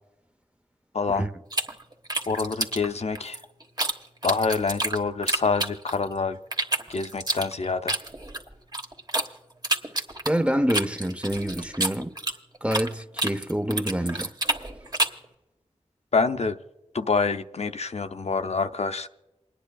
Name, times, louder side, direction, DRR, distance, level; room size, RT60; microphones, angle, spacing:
voice 1, 0.9-1.3 2.3-3.4 4.2-6.4 6.9-8.0 16.1-16.6 16.9-19.1, left 4 dB, 65° left, 0.6 m, -26 dB
sound 1, 1.5-3.9 4.2-6.1 6.5-9.3 9.6-12.9 13.2-15.2, right 1 dB, 35° right, 1.4 m, -28 dB
voice 2, 10.3-12.1 12.6-14.3, equal, 10° right, 0.6 m, -26 dB
29.0 x 9.9 x 2.3 m
wide cardioid pair, 55°, 12 cm